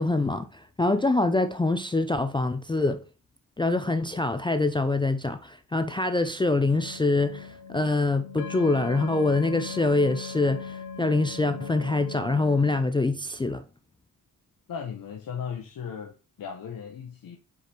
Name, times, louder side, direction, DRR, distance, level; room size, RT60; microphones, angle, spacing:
voice 1, 0.0-3.0 3.6-13.6, left 2 dB, 15° left, 0.4 m, -25 dB
sound 1, 6.5-12.8, left 6 dB, 85° left, 1.2 m, -39 dB
voice 2, 14.7-17.4, left 7 dB, 70° left, 1.0 m, -37 dB
5.0 x 4.7 x 4.3 m
cardioid pair, 95°, 36 cm